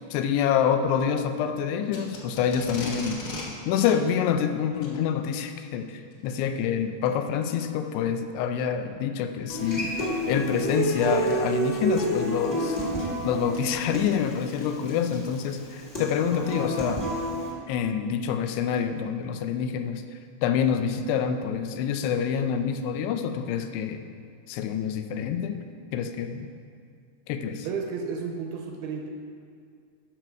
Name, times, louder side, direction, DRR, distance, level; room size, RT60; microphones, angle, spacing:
voice 1, 0.1-3.2 3.7-12.8 13.2-17.1 17.7-20.0 20.4-24.0 24.5-25.6 25.9-26.5 27.3-27.7, left 8 dB, 90° left, 7 dB, 2.7 m, -27 dB
Packing tape duct tape, 1.9-3.5 3.8-4.0 4.7-5.0 6.1-6.3 7.0-7.1 7.8-7.9 9.4-9.7 10.8-10.9 11.3-11.4 11.8-15.8, left 3 dB, 70° left, 1.4 m, -40 dB
Human voice / Acoustic guitar, 9.5-17.5, right 1 dB, 50° left, 0.6 m, -29 dB
voice 2, 27.6-29.1, right 5 dB, 85° right, 3 dB, 2.4 m, -32 dB
12.5 x 6.1 x 4.6 m, 2.2 s
omnidirectional pair, 4.7 m